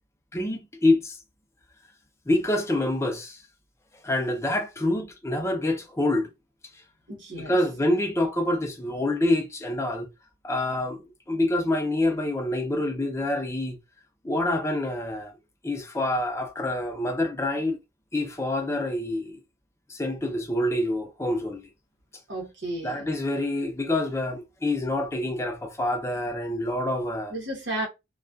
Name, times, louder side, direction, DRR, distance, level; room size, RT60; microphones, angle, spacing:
voice 1, 0.3-1.1 2.3-3.4 4.0-6.3 7.3-10.1 10.4-11.0 11.3-13.8 14.2-15.3 15.6-17.8 18.1-19.4 19.9-21.6 22.8-27.3, left 1 dB, 15° left, 0.5 m, -26 dB
voice 2, 7.1-7.6 22.3-23.1 27.3-27.9, right 1 dB, 80° right, 0.8 m, -33 dB
2.3 x 2.2 x 2.3 m
head